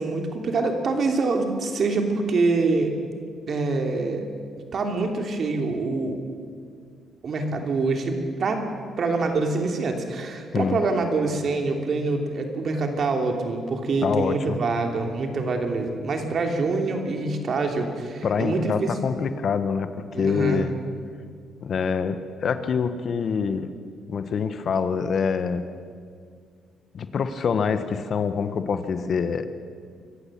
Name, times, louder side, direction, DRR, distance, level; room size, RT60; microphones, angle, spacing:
voice 1, 0.0-2.9 3.5-4.2 4.7-6.2 7.2-8.6 9.0-18.9 20.1-20.6, right 3 dB, 55° right, 4 dB, 3.0 m, -25 dB
voice 2, 14.0-14.6 18.2-20.7 21.6-23.7 24.1-25.6 26.9-29.5, left 6 dB, 55° left, 10 dB, 1.3 m, -25 dB
25.0 x 14.5 x 7.5 m, 2.1 s
cardioid pair, 90°, 0 cm